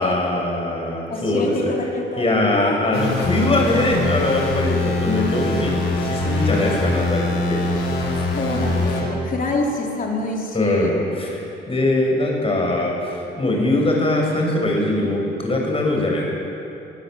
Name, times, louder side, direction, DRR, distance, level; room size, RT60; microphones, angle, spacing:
voice 1, 0.0-1.7 2.2-7.6 10.5-11.4 11.7-16.2, left 2 dB, 30° left, 0 dB, 7.0 m, -21 dB
voice 2, 1.1-3.0 8.4-10.9, left 2 dB, 45° left, 0 dB, 4.1 m, -26 dB
sound 1, 2.9-9.0, left 2 dB, 85° left, 5.5 m, -23 dB
23.5 x 15.0 x 8.1 m, 2.9 s
cardioid pair, 90°, 20 cm